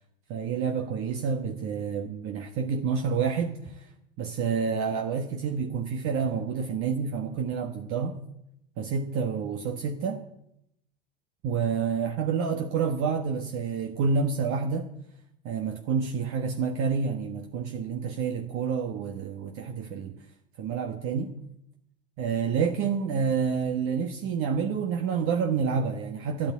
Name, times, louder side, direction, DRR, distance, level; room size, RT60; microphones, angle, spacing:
voice 1, 0.3-3.9 4.2-8.2 8.8-10.2 11.4-14.9 15.4-20.1 20.6-21.4 22.2-26.5, right 6 dB, 50° right, 1.5 m, -28 dB
12.5 x 10.5 x 8.5 m
hypercardioid pair, 85°, 29 cm